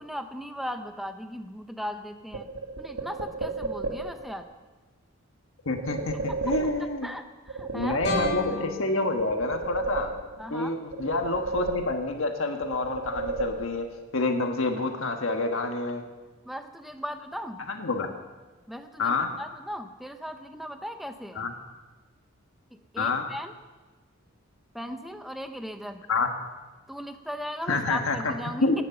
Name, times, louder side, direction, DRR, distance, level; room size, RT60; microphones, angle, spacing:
voice 1, 0.0-2.5 2.8-4.5 6.3-6.4 6.8-8.0 10.4-10.7 16.4-17.6 18.7-21.5 22.7-23.5 24.7-26.0 26.9-28.8, equal, ahead, 7 dB, 0.9 m, -37 dB
sound 1, 2.3-4.3 5.8-7.1 7.5-8.8 9.2-10.6 10.9-12.3 12.6-14.0, right 3 dB, 75° right, 1.8 m, -33 dB
voice 2, 5.6-7.1 7.7-10.1 10.5-13.8 14.1-16.0 17.7-18.1 19.0-19.3 21.3-21.5 23.0-23.3 26.1-26.3 27.7-28.3 28.6-28.8, left 3 dB, 70° left, 4 dB, 1.4 m, -28 dB
sound 2, 8.0-11.0, left 3 dB, 50° left, 4.7 m, -36 dB
19.0 x 9.8 x 7.0 m, 1.3 s
head